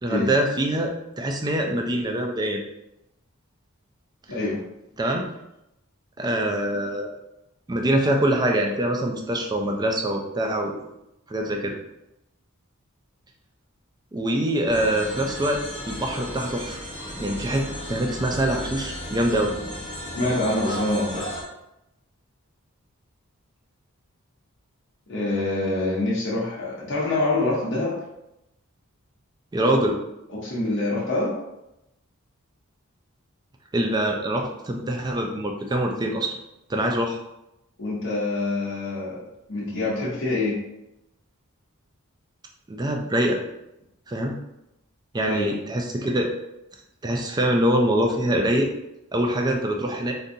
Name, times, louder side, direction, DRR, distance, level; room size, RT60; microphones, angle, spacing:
voice 1, 0.0-2.6 5.0-5.3 6.2-7.1 7.7-10.8 11.3-11.7 14.1-16.8 17.2-17.6 17.9-19.5 29.5-30.0 33.7-36.3 36.7-37.2 42.7-43.4 44.1-44.4 45.1-46.3 47.0-48.7 49.1-50.1, right 1 dB, 20° right, 2 dB, 0.4 m, -24 dB
voice 2, 4.3-4.6 20.1-21.3 25.1-28.0 30.3-31.4 37.8-40.6 45.3-45.5, left 2 dB, 60° left, -6 dB, 0.9 m, -26 dB
sound 1, 14.7-21.4, equal, 25° left, 0.9 m, -34 dB
3.7 x 2.5 x 2.7 m, 0.87 s
head